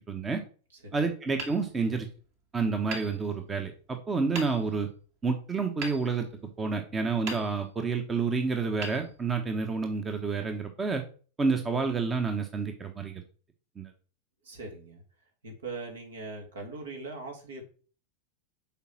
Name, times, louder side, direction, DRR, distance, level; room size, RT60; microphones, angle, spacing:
voice 1, 0.1-0.4 0.9-2.1 2.5-4.9 5.2-6.3 6.6-11.0 11.4-13.2 13.8-13.9, right 4 dB, 15° right, 6 dB, 1.1 m, -29 dB
voice 2, 0.7-1.1 14.4-15.0 15.4-17.6, right 3 dB, 65° right, 2 dB, 2.9 m, -41 dB
Hammer, 1.4-2.4 2.9-3.8 4.3-5.0 5.8-6.8 7.2-8.0 8.8-9.7, right 3 dB, 45° right, 2.5 m, -42 dB
7.1 x 4.9 x 6.0 m, 0.40 s
figure-of-eight pair, 90°, 0 cm